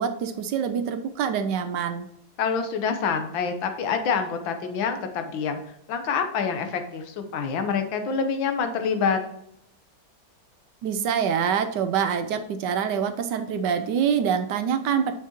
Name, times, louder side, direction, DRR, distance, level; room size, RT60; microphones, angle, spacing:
voice 1, 0.0-2.1 10.8-15.1, right 7 dB, 70° right, 9 dB, 1.1 m, -25 dB
voice 2, 2.4-5.6 5.9-9.2, left 6 dB, 85° left, 7 dB, 1.7 m, -26 dB
8.2 x 6.0 x 2.9 m, 0.74 s
omnidirectional pair, 2.1 m